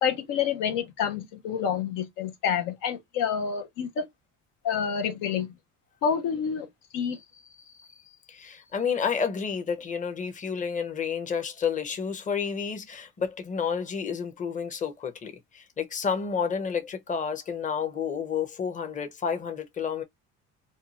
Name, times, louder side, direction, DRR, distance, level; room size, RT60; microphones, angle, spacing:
voice 1, 0.0-4.1 4.6-5.5 6.0-6.7 6.9-7.2, left 7 dB, 80° left, 0.8 m, -28 dB
voice 2, 7.6-7.9 8.3-20.0, left 6 dB, 25° left, 0.7 m, -30 dB
2.6 x 2.3 x 2.8 m
cardioid pair, 105°, 31 cm